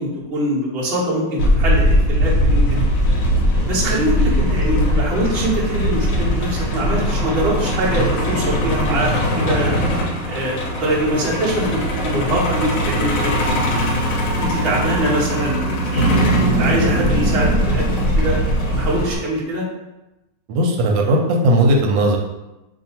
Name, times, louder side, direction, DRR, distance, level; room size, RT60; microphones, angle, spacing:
voice 1, 0.0-2.8 3.6-9.8 10.3-14.0 14.4-16.2 16.5-18.4 18.7-19.6, right 1 dB, 45° right, -5 dB, 0.9 m, -23 dB
Truck, 1.4-19.2, equal, 65° left, 0.9 m, -19 dB
voice 2, 20.5-22.2, right 1 dB, 85° right, 1 dB, 1.3 m, -16 dB
2.7 x 2.6 x 4.2 m, 0.98 s
omnidirectional pair, 2.0 m